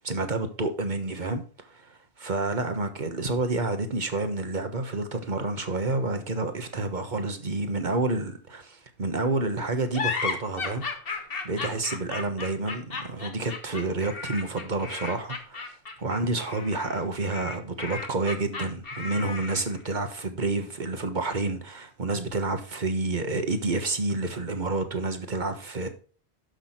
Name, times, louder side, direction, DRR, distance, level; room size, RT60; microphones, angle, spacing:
voice 1, 0.0-10.8 11.1-15.7 16.0-25.9, right 2 dB, 45° right, 1.4 m, -29 dB
sound 1, 9.9-19.8, left 4 dB, 60° left, 1.6 m, -34 dB
11.5 x 6.1 x 4.4 m
omnidirectional pair, 1.1 m